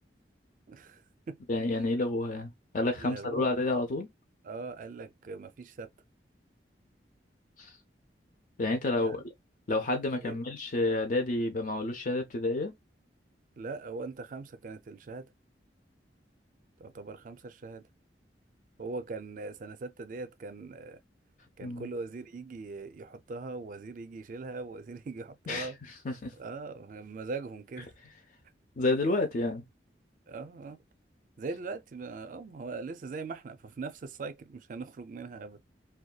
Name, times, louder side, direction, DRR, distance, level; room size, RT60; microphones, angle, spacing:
voice 1, 0.7-1.4 3.0-3.5 4.4-5.9 9.0-9.2 10.1-10.4 13.6-15.3 16.8-17.8 18.8-21.0 21.6-25.8 26.4-27.9 30.3-30.8 31.4-35.6, right 3 dB, 45° right, 0.4 m, -41 dB
voice 2, 1.5-4.1 7.6-7.7 8.6-9.2 9.7-12.7 21.6-21.9 25.5-25.7 26.0-26.3 28.8-29.6, left 2 dB, 45° left, 0.5 m, -29 dB
2.7 x 2.2 x 2.2 m
head